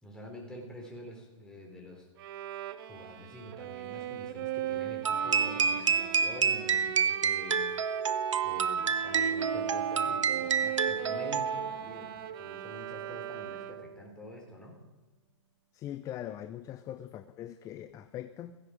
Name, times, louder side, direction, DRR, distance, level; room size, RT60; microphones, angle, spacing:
voice 1, 0.0-2.1 2.9-7.9 8.4-14.8, left 1 dB, 5° left, 0 dB, 3.9 m, -46 dB
Bowed string instrument, 2.2-14.0, right 12 dB, 45° right, 1.0 m, -39 dB
sound 1, 5.0-11.9, right 6 dB, 80° right, 0.9 m, -29 dB
voice 2, 15.7-18.6, left 11 dB, 20° left, 11 dB, 0.6 m, -41 dB
16.5 x 15.5 x 5.1 m, 1.1 s
hypercardioid pair, 130°, 16 cm